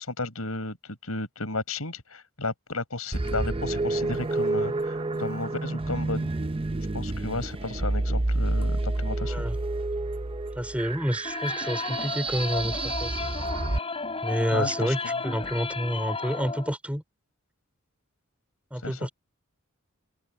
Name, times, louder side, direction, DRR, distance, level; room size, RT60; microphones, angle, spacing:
voice 1, 0.1-6.3 6.9-9.4 14.5-15.0 18.8-19.1, left 2 dB, 90° left, 6.6 m, -33 dB
sound 1, 3.1-13.8, right 2 dB, 25° right, 0.6 m, -29 dB
voice 2, 9.2-9.6 10.6-13.2 14.2-17.0 18.7-19.1, equal, 5° right, 3.8 m, -29 dB
sound 2, 11.2-16.7, left 4 dB, 25° left, 6.8 m, -33 dB
open air
head